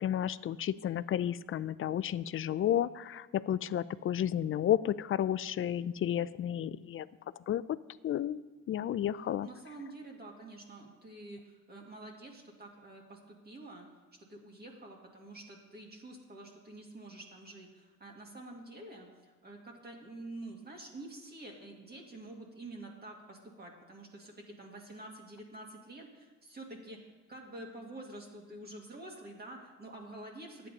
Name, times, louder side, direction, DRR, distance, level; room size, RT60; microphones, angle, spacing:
voice 1, 0.0-7.1 7.5-7.8 8.0-8.4 8.7-9.5, left 10 dB, 45° left, 18 dB, 0.4 m, -32 dB
voice 2, 9.4-13.9 14.3-27.0 27.3-30.7, right 2 dB, 30° right, 0 dB, 2.1 m, -48 dB
11.0 x 8.8 x 5.3 m, 1.2 s
cardioid pair, 90°, 30 cm